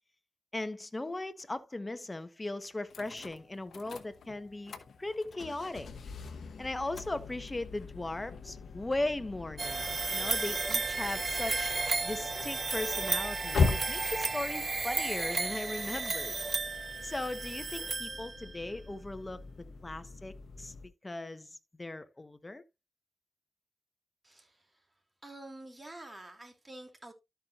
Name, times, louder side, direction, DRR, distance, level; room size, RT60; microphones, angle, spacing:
voice 1, 0.5-4.7 5.0-5.9 6.6-11.7 12.0-16.3 17.0-19.4 19.8-20.7 21.0-22.6, left 2 dB, 30° left, 1.2 m, -38 dB
sound 1, 2.9-20.9, left 4 dB, 80° left, 1.0 m, -40 dB
sound 2, 9.6-18.6, right 4 dB, 55° right, 0.6 m, -33 dB
voice 2, 24.2-24.9 25.2-27.1, right 1 dB, 30° right, 3.1 m, -48 dB
13.0 x 5.7 x 2.6 m
cardioid pair, 45°, 0 cm